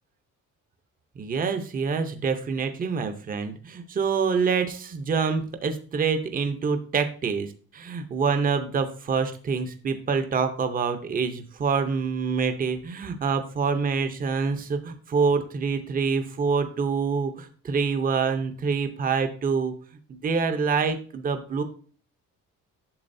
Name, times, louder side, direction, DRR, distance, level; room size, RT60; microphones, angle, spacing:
voice 1, 1.2-19.7 20.1-21.6, right 5 dB, 25° right, 8 dB, 0.7 m, -26 dB
8.8 x 7.3 x 2.6 m, 0.42 s
cardioid pair, 175°, 33 cm